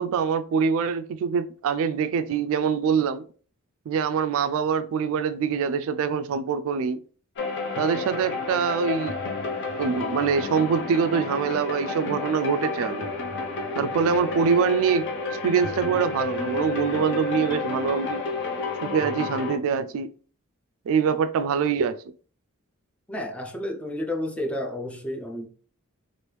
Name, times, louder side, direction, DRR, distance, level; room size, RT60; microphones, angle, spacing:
voice 1, 0.0-3.2 3.9-7.0 7.8-9.2 9.8-13.1 13.7-15.0 15.3-18.2 18.8-20.1 20.9-22.0, right 6 dB, 65° right, 0.3 m, -24 dB
sound 1, 7.4-19.6, left 3 dB, 55° left, 0.6 m, -30 dB
voice 2, 23.1-25.5, left 1 dB, 5° left, 0.4 m, -31 dB
3.0 x 2.5 x 3.2 m
head